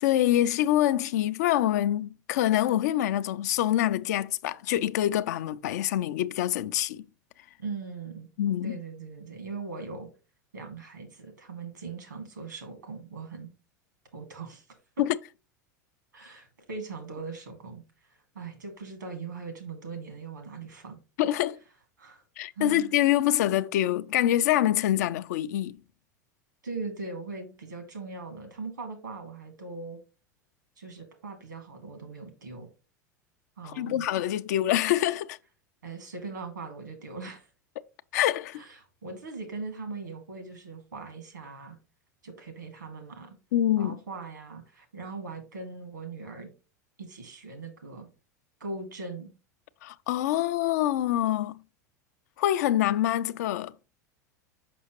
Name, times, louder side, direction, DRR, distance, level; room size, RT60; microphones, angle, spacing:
voice 1, 0.0-7.0 8.4-8.8 15.0-15.2 21.2-21.6 22.4-25.8 33.6-35.4 38.1-38.6 43.5-44.0 49.8-51.6 52.4-53.7, left 13 dB, 65° left, 0.4 m, -25 dB
voice 2, 7.6-8.3 8.6-10.1 10.5-13.5 14.1-14.7 15.0-15.1 16.1-17.8 18.1-21.0 22.0-22.2 22.6-23.0 26.6-30.0 30.8-32.7 33.6-34.1 35.8-37.5 38.5-41.8 42.2-43.4 43.8-46.5 47.0-48.1 48.6-49.3, right 4 dB, 85° right, 1.7 m, -40 dB
6.0 x 5.6 x 2.9 m
figure-of-eight pair, 85°, 10 cm